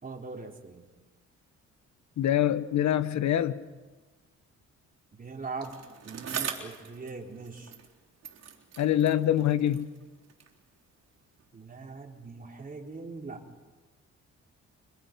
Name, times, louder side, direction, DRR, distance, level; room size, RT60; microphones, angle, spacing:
voice 1, 0.0-0.9 5.1-7.7 11.5-13.5, right 4 dB, 30° right, 3.9 m, -41 dB
voice 2, 2.2-3.6 8.8-9.9, left 11 dB, 70° left, 1.4 m, -25 dB
Bicycle, 5.6-8.0 8.2-10.6 11.4-11.5, right 7 dB, 60° right, 3.8 m, -41 dB
30.0 x 25.0 x 5.3 m
cardioid pair, 90°, 30 cm